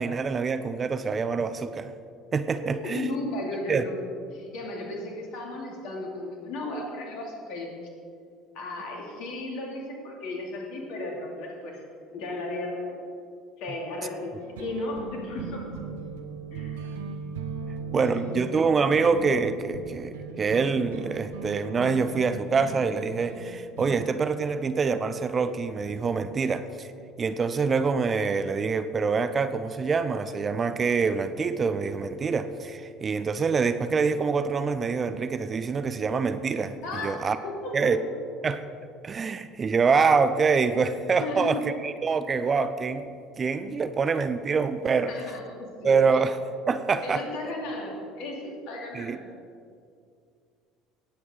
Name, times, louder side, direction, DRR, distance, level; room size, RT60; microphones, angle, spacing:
voice 1, 0.0-1.9 2.3-3.1 3.7-3.8 17.9-26.9 27.2-37.4 37.7-38.0 38.4-38.6 39.0-43.1 43.4-45.1 45.8-46.4 46.7-47.2 48.9-49.2, right 5 dB, 30° right, 11 dB, 0.6 m, -25 dB
voice 2, 2.6-3.9 4.3-7.7 8.5-11.8 12.1-13.0 13.6-15.7 16.5-16.8 17.6-18.0 18.3-18.4 36.8-37.9 41.2-41.6 45.1-45.9 47.0-49.2, left 2 dB, 60° left, 0 dB, 2.7 m, -35 dB
sound 1, 14.4-24.2, right 4 dB, 70° right, 0.9 m, -38 dB
18.0 x 8.5 x 3.9 m, 2.3 s
figure-of-eight pair, 60°, 0 cm